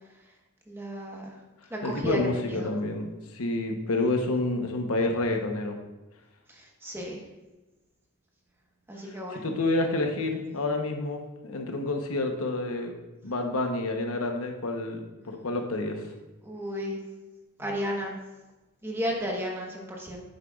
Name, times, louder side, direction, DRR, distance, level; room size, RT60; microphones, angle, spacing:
voice 1, 0.7-1.3 1.7-2.2 2.5-2.7 6.8-7.2 8.9-9.5 16.4-17.0 17.6-18.2 18.8-20.2, equal, 10° right, -1 dB, 1.1 m, -33 dB
voice 2, 1.8-3.1 3.3-5.8 9.1-13.0 13.2-16.0 17.6-17.7, left 2 dB, 70° left, 4 dB, 0.9 m, -29 dB
10.0 x 8.0 x 2.4 m, 1.1 s
head